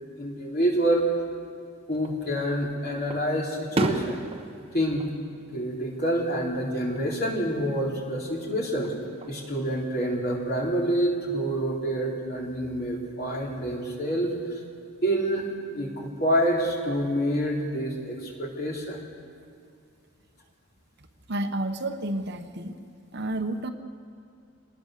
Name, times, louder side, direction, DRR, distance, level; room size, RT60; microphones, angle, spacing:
voice 1, 0.2-1.1 1.9-4.2 4.7-5.1 5.5-8.9 9.3-14.3 15.0-19.0, right 1 dB, 45° left, -2 dB, 3.8 m, -27 dB
Fireworks, 1.9-2.6 3.1-6.2 6.5-7.1 8.6-9.5, right 1 dB, 30° right, 1.1 m, -33 dB
voice 2, 21.0-22.8 23.1-23.7, right 1 dB, 55° right, 7 dB, 1.1 m, -31 dB
25.0 x 19.5 x 6.6 m, 2.4 s
head